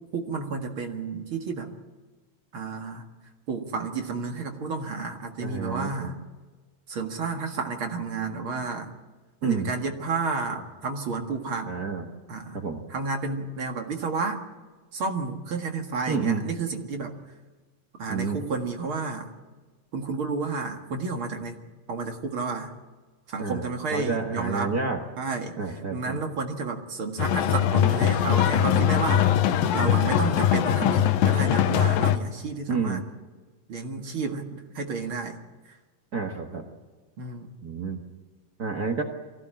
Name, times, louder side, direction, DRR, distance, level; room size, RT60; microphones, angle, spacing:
voice 1, 0.1-1.7 2.5-3.0 3.5-6.1 6.9-8.9 9.4-11.7 12.3-12.6 12.9-14.4 14.9-17.2 18.0-19.3 19.9-21.6 21.9-22.7 23.3-24.7 25.2-33.1 33.7-35.4 35.7-35.8 37.2-37.5, right 4 dB, 45° right, 3 dB, 2.0 m, -31 dB
voice 2, 5.4-6.1 9.4-9.7 11.7-12.0 12.5-12.8 16.1-16.4 18.1-18.4 23.4-23.6 23.9-25.0 25.6-26.2 32.7-33.0 36.1-36.7 37.6-38.0 38.6-39.0, right 5 dB, 85° right, 2 dB, 0.8 m, -29 dB
sound 1, 27.2-32.2, left 10 dB, 75° left, 2.7 m, -21 dB
24.0 x 17.0 x 8.9 m, 1.3 s
omnidirectional pair, 4.4 m